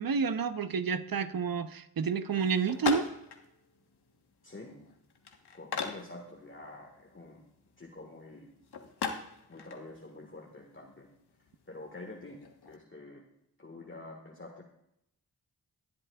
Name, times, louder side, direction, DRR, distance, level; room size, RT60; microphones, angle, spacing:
voice 1, 0.0-3.1, right 5 dB, 60° right, 11 dB, 0.8 m, -30 dB
sound 1, 2.3-12.8, left 5 dB, 80° left, 1.3 m, -42 dB
voice 2, 4.4-4.7 5.5-7.4 7.8-8.5 9.5-11.1 11.7-13.2 13.6-14.6, left 2 dB, 30° left, -1 dB, 1.7 m, -47 dB
19.5 x 7.7 x 2.4 m, 0.81 s
cardioid pair, 40°, 39 cm